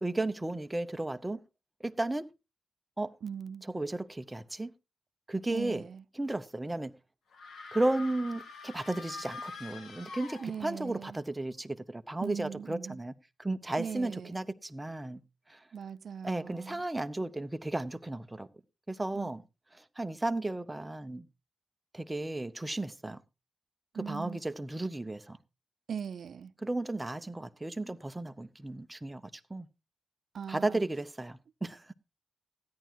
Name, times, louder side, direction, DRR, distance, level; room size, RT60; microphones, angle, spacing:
voice 1, 0.0-1.4 1.8-2.3 3.0-3.1 3.7-4.7 5.3-5.8 6.2-6.9 7.7-13.1 13.4-15.2 15.5-15.6 16.2-18.5 18.9-19.4 20.0-21.3 21.9-23.2 24.1-25.4 26.6-29.7 30.5-31.9, right 2 dB, 10° right, 0.6 m, -34 dB
voice 2, 3.2-3.7 5.5-6.0 10.4-11.2 12.2-13.0 13.7-14.4 15.7-16.8 19.1-19.3 23.9-24.4 25.9-26.5 30.3-30.8, right 7 dB, 55° right, 0.6 m, -40 dB
sound 1, 7.3-11.0, left 4 dB, 85° left, 1.9 m, -45 dB
16.0 x 10.5 x 3.0 m
wide cardioid pair, 180°, 0 cm